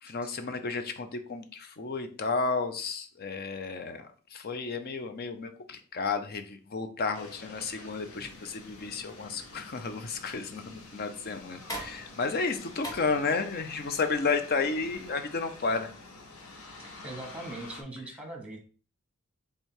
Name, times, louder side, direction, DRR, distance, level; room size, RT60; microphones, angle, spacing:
voice 1, 0.0-15.9, left 4 dB, 45° left, 8 dB, 0.6 m, -32 dB
sound 1, 7.1-17.8, left 3 dB, 65° left, 1.1 m, -48 dB
sound 2, 8.1-15.1, equal, 15° left, 1.1 m, -47 dB
voice 2, 17.0-18.6, right 1 dB, 5° right, 2 dB, 1.1 m, -40 dB
3.6 x 3.3 x 4.4 m, 0.40 s
head